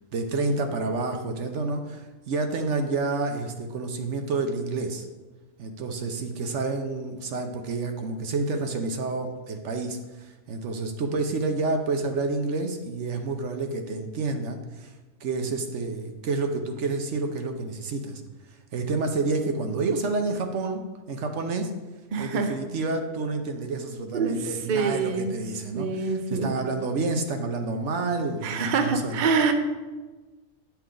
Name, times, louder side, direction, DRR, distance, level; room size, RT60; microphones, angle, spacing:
voice 1, 0.1-5.1 5.6-14.9 15.2-18.2 18.5-20.8 21.1-21.7 22.2-29.2, right 3 dB, 65° right, 5 dB, 1.0 m, -29 dB
voice 2, 22.1-22.5 24.1-24.4 24.7-25.3 25.7-26.5 28.4-29.5, right 5 dB, 45° right, 6 dB, 0.8 m, -25 dB
9.7 x 5.8 x 3.8 m, 1.2 s
omnidirectional pair, 1.3 m